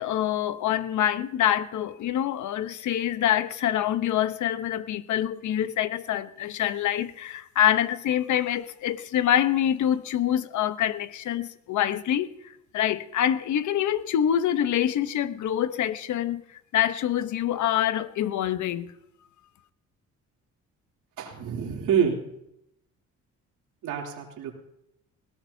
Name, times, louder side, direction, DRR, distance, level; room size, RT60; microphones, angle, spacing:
voice 1, 0.0-12.3 12.7-16.4 16.7-18.9, left 11 dB, 75° left, 1.0 m, -25 dB
voice 2, 21.2-22.2 23.8-24.5, right 7 dB, 85° right, 3.2 m, -27 dB
20.0 x 17.5 x 2.8 m
cardioid pair, 90°, 30 cm